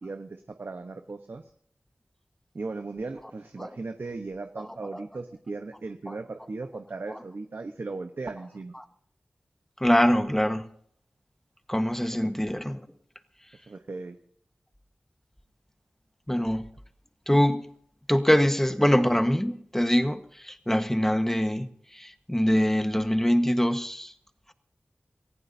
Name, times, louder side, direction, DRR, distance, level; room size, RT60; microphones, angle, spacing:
voice 1, 0.0-1.5 2.5-8.7 12.2-12.3 13.7-14.2, right 3 dB, 65° right, 1.0 m, -37 dB
voice 2, 9.8-10.7 11.7-12.8 16.3-16.7 17.3-17.7 18.1-24.1, equal, 10° left, 1.3 m, -24 dB
27.5 x 15.5 x 2.7 m
wide cardioid pair, 50°, 4 cm